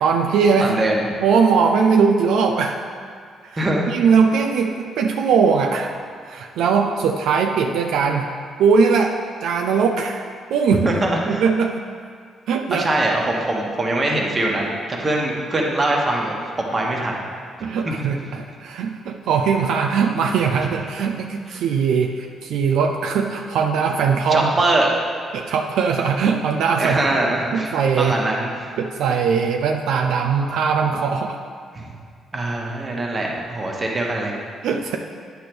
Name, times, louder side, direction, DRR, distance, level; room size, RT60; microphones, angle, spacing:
voice 1, 0.0-0.8 1.2-2.8 3.5-5.9 6.2-8.3 8.6-10.2 10.5-10.9 11.2-11.8 12.5-12.9 17.6-24.5 25.3-27.0 27.5-28.1 28.8-31.4 34.6-35.0, right 6 dB, 80° right, 3 dB, 0.4 m, -20 dB
voice 2, 0.6-1.0 3.6-3.9 10.8-11.4 12.7-17.2 17.8-18.0 21.5-21.6 24.3-25.0 26.8-28.5 31.7-31.9 32.3-34.4, right 2 dB, 30° right, -1 dB, 1.3 m, -22 dB
9.3 x 3.4 x 6.0 m, 2.1 s
cardioid pair, 90°, 0 cm